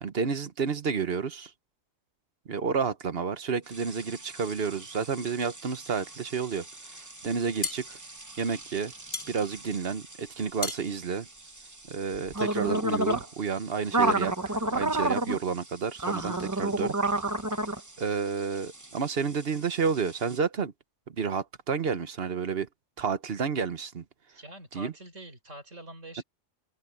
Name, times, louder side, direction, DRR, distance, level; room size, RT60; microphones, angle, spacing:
voice 1, 0.0-1.5 2.5-6.6 7.2-8.0 8.4-8.9 9.3-11.3 11.9-16.9 18.0-20.7 21.1-22.7 23.0-24.0 24.7-24.9, right 6 dB, 55° right, 1.2 m, -30 dB
sound 1, 3.7-20.4, right 2 dB, 15° right, 0.9 m, -33 dB
sound 2, 7.2-12.2, left 3 dB, 35° left, 2.6 m, -38 dB
voice 2, 15.1-15.4 24.3-26.2, right 1 dB, 75° right, 4.7 m, -45 dB
open air
omnidirectional pair, 1.3 m